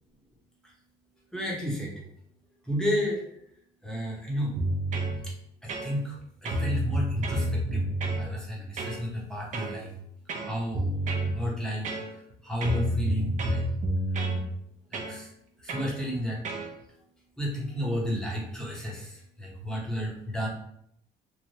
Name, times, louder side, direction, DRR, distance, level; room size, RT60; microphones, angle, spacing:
voice 1, 1.3-2.0 2.6-3.2 3.8-4.6 5.2-5.3 5.6-6.2 6.4-7.9 8.2-10.0 10.4-11.0 11.3-13.6 14.9-15.3 15.6-16.4 17.4-20.5, equal, 5° left, -4 dB, 0.9 m, -32 dB
sound 1, 4.6-5.2 5.7-6.2 6.4-8.2 8.8-9.0 9.5-9.8 10.3-11.3 11.8-12.3 12.6-14.4 14.9-15.2 15.7-15.9 16.4-16.7, right 1 dB, 50° right, 0.5 m, -29 dB
3.1 x 2.1 x 2.8 m, 0.74 s
cardioid pair, 110°, 17 cm